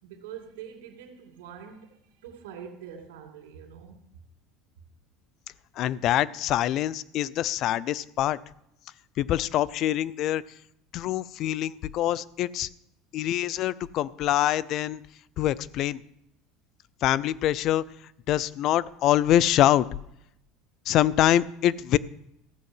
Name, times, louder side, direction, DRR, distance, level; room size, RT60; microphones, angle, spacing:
voice 1, 0.0-4.0, right 8 dB, 90° right, 2 dB, 2.2 m, -44 dB
voice 2, 5.8-8.4 9.2-10.4 10.9-12.7 13.1-15.0 15.4-16.0 17.0-17.8 18.3-19.9 20.9-22.0, left 12 dB, 50° left, 20 dB, 0.4 m, -24 dB
15.0 x 6.2 x 7.8 m, 0.79 s
supercardioid pair, 120°, 0 cm